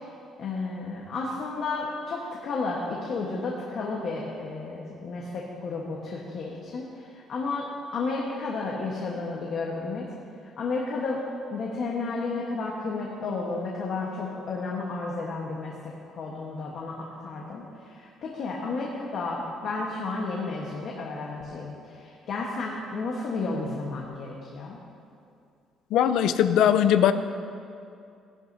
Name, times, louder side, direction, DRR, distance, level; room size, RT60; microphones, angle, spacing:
voice 1, 0.4-6.9 7.3-10.1 10.6-11.2 11.5-24.8, left 3 dB, 45° left, -3 dB, 1.2 m, -32 dB
voice 2, 25.9-27.1, left 10 dB, 70° left, 11 dB, 0.5 m, -20 dB
17.0 x 11.0 x 2.7 m, 2.5 s
cardioid pair, 175°, 0 cm